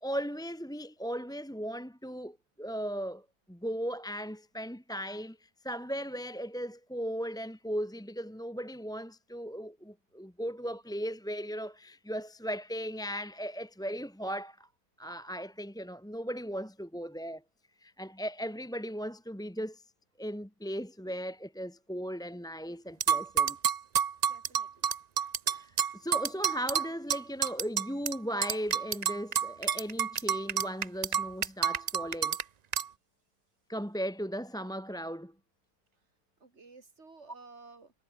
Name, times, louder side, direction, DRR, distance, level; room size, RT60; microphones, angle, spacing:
voice 1, 0.0-14.7 15.0-17.4 17.8-19.8 20.2-23.6 25.6-32.4 33.7-35.3, equal, 5° left, 1.2 m, -37 dB
sound 1, 23.0-28.2 28.4-32.4 32.7-32.9, right 7 dB, 80° right, 0.3 m, -29 dB
voice 2, 24.2-24.9 36.4-37.9, right 3 dB, 45° right, 3.2 m, -53 dB
omnidirectional pair, 1.6 m